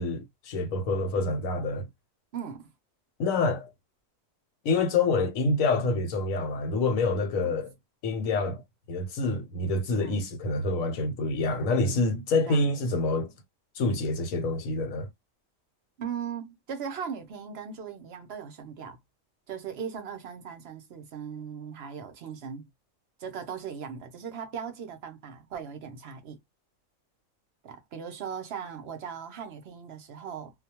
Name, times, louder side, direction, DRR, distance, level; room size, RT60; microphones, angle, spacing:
voice 1, 0.0-1.9 3.2-3.7 4.6-7.7 8.0-8.6 8.9-13.3 13.7-15.1, left 3 dB, 75° left, 1.1 m, -27 dB
voice 2, 2.3-2.7 7.4-7.6 10.0-10.2 12.5-12.7 16.0-19.0 19.5-22.6 23.2-26.4 27.6-30.5, right 7 dB, 60° right, 0.8 m, -38 dB
2.4 x 2.2 x 2.8 m
omnidirectional pair, 1.4 m